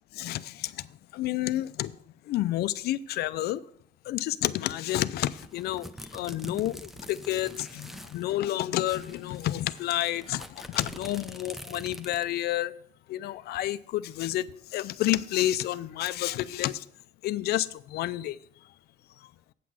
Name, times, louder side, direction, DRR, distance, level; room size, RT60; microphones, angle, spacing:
voice 1, 0.1-2.0 2.3-3.6 4.1-12.7 13.1-16.8 17.2-18.4 19.2-19.3, left 14 dB, 70° left, 0.5 m, -30 dB
sound 1, 5.3-8.2 8.5-8.6 8.8-12.4, equal, ahead, 0.6 m, -45 dB
8.4 x 5.9 x 6.3 m
cardioid pair, 110°, 17 cm